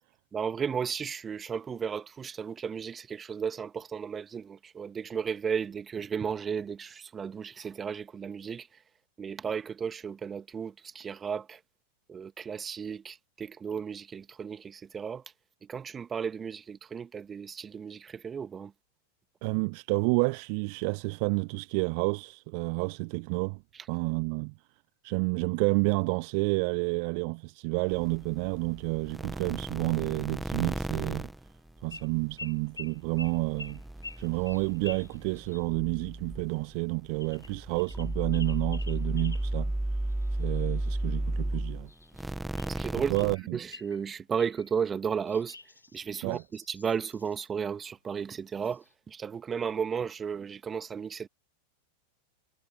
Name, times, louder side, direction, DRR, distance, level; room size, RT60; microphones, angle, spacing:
voice 1, 0.3-8.8 9.2-11.6 12.1-15.2 15.6-18.7 42.7-43.1 43.5-45.6 45.9-51.3, right 6 dB, 20° right, 1.9 m, -34 dB
voice 2, 19.4-23.6 23.9-24.5 25.0-31.3 31.8-33.8 34.2-39.7 40.4-41.9 43.1-43.6 46.2-46.4, right 37 dB, 45° right, 0.6 m, -30 dB
sound 1, 27.9-32.4 32.6-43.4, right 1 dB, 5° right, 0.3 m, -34 dB
sound 2, 31.9-32.1 32.4-35.7 37.2-39.5 40.1-41.1 41.9-42.9 43.2-44.0 44.4-44.7 45.3-47.5 48.3-48.4 48.6-48.9, left 3 dB, 80° left, 4.9 m, -48 dB
figure-of-eight pair, 90°, 0 cm